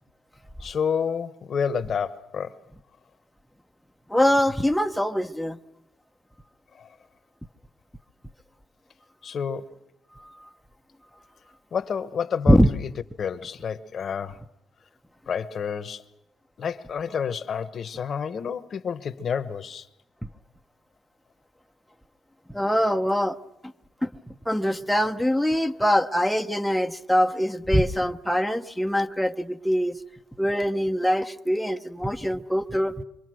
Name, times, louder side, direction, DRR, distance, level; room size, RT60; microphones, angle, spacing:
voice 1, 0.6-2.6 6.7-6.9 9.2-9.7 11.7-12.9 13.2-14.4 15.3-16.1 16.6-19.9, left 7 dB, 55° left, 1.0 m, -29 dB
voice 2, 4.1-5.6 10.2-10.5 12.5-12.7 22.5-23.4 24.0-30.0 30.4-33.0, equal, ahead, 0.8 m, -23 dB
25.0 x 24.5 x 6.3 m
cardioid pair, 90°, 0 cm